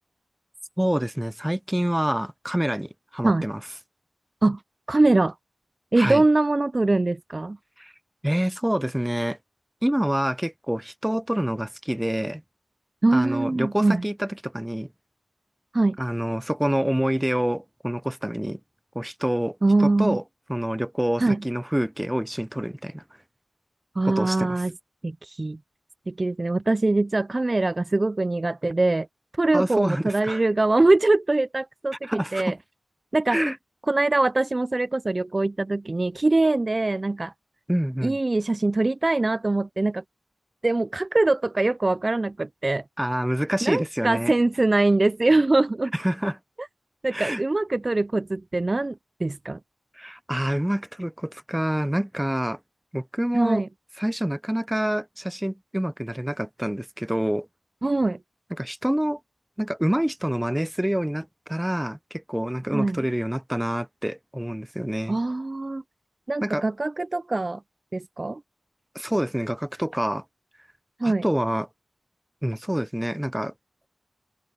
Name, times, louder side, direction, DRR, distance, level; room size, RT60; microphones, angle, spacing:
voice 1, 0.8-3.7 6.0-6.2 7.8-7.9 8.2-9.4 9.8-12.4 13.1-14.9 16.0-18.6 18.9-20.2 20.5-23.0 24.0-24.6 29.5-30.4 32.0-32.6 33.3-33.6 37.7-38.2 43.0-44.3 45.9-46.4 47.1-47.4 49.9-52.6 52.9-53.6 54.0-57.5 58.5-59.2 59.6-65.2 66.4-66.6 68.9-70.2 71.0-71.7 72.4-73.5, equal, 10° right, 0.7 m, -27 dB
voice 2, 4.9-5.3 5.9-7.6 13.0-14.0 15.7-16.0 19.6-20.2 21.2-21.4 24.0-24.7 25.0-25.6 26.1-29.1 29.4-32.5 33.1-33.4 33.9-37.3 38.0-40.0 40.6-42.8 43.6-45.9 47.0-49.6 53.3-53.7 57.8-58.2 62.7-63.0 65.1-65.8 66.3-67.6 67.9-68.4 71.0-71.2, right 2 dB, 40° right, 0.4 m, -23 dB
open air
cardioid pair, 50°, 0 cm